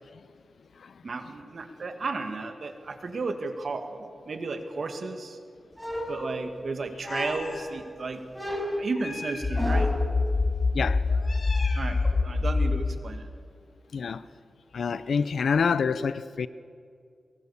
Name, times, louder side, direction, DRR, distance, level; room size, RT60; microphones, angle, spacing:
voice 1, 1.0-5.4 6.1-8.2 8.7-9.9 11.8-13.3, right 3 dB, 65° right, 2.1 m, -34 dB
sound 1, 5.8-6.6 7.0-7.7 8.3-10.1, equal, ahead, 5.8 m, -33 dB
Meow, 7.1-7.7 8.9-9.9 11.1-12.2, left 3 dB, 65° left, 3.8 m, -40 dB
sound 2, 9.4-13.0, left 3 dB, 40° left, 0.8 m, -25 dB
voice 2, 13.9-14.2 14.7-16.5, left 5 dB, 85° left, 0.7 m, -26 dB
23.5 x 22.5 x 7.2 m
cardioid pair, 70°, 0 cm